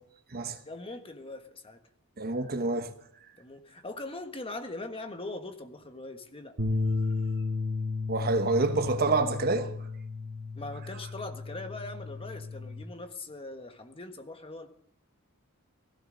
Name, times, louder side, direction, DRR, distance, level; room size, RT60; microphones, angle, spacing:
voice 1, 0.6-1.8 3.4-6.6 6.9-7.4 10.5-14.7, left 2 dB, 25° left, 1.4 m, -41 dB
voice 2, 2.2-2.9 8.1-9.7, right 3 dB, 45° right, 1.1 m, -27 dB
sound 1, 6.6-12.8, left 3 dB, 80° right, 1.9 m, -33 dB
16.5 x 16.0 x 3.9 m
head